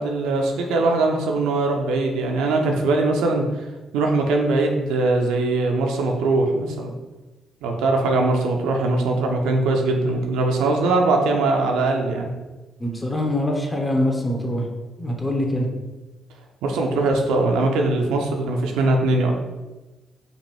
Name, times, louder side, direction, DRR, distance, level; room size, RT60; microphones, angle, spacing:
voice 1, 0.0-3.4 3.9-6.9 7.6-12.3 16.6-19.3, right 2 dB, 70° right, 2 dB, 0.5 m, -21 dB
voice 2, 12.8-14.6 15.0-15.7, left 1 dB, 20° left, 1 dB, 1.0 m, -23 dB
5.2 x 2.4 x 3.4 m, 1.1 s
figure-of-eight pair, 40°, 0 cm